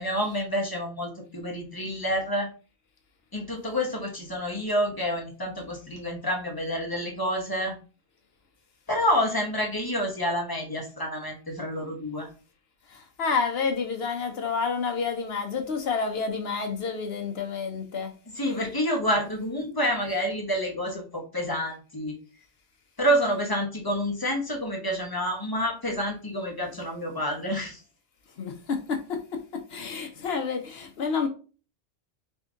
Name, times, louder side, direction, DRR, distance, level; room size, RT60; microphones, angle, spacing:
voice 1, 0.0-2.5 3.3-7.7 8.9-12.3 18.3-22.1 23.0-27.8, equal, 20° left, 0.8 m, -28 dB
voice 2, 12.9-18.1 28.4-29.2 29.7-31.3, left 5 dB, 60° left, 0.9 m, -29 dB
3.6 x 2.6 x 3.6 m
omnidirectional pair, 1.3 m